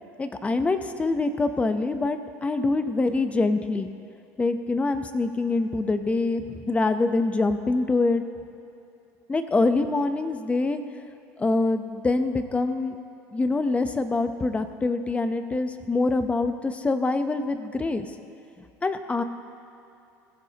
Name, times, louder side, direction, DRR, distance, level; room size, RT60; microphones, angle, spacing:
voice 1, 0.2-3.9 4.4-8.2 9.3-10.8 11.4-13.0 13.3-18.1 18.8-19.2, left 3 dB, 15° left, 9 dB, 0.8 m, -25 dB
20.5 x 15.0 x 2.9 m, 2.7 s
supercardioid pair, 110°, 7 cm